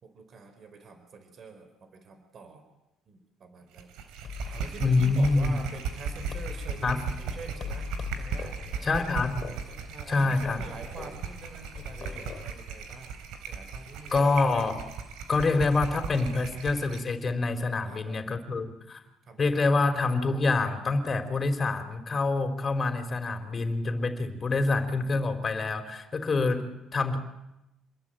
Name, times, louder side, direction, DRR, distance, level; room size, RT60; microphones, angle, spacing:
voice 1, 0.0-2.6 3.1-3.9 4.5-7.9 8.2-8.9 9.9-13.1 13.5-14.3 17.7-18.4 19.2-19.7, right 4 dB, 50° right, 8 dB, 4.9 m, -46 dB
sound 1, 3.7-17.1, right 6 dB, 85° right, 3.8 m, -37 dB
sound 2, 4.2-12.5, left 6 dB, 50° left, 3.4 m, -41 dB
voice 2, 4.8-5.6 6.8-7.1 8.8-9.5 10.1-10.7 14.1-14.8 15.3-19.0 19.4-27.2, left 3 dB, 30° left, 7 dB, 3.8 m, -26 dB
27.5 x 21.5 x 9.0 m, 0.93 s
cardioid pair, 105°, 0 cm